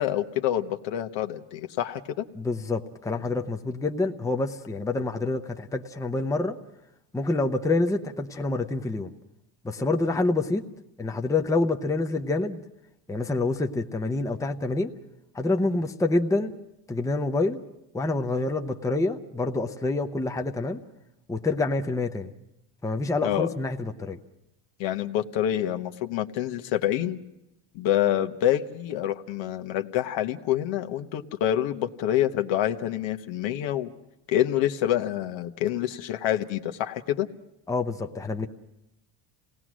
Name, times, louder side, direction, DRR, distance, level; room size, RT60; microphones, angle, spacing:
voice 1, 0.0-2.3 23.2-23.5 24.8-27.2 27.7-33.9 34.3-37.3, left 12 dB, 65° left, 7 dB, 1.2 m, -27 dB
voice 2, 2.4-6.6 7.1-9.1 9.6-10.6 11.0-12.6 13.1-14.9 15.3-16.5 16.9-17.6 17.9-20.8 21.3-22.3 22.8-24.2 37.7-38.5, left 2 dB, 5° left, 5 dB, 0.8 m, -27 dB
27.0 x 18.0 x 6.2 m, 0.90 s
supercardioid pair, 110°, 49 cm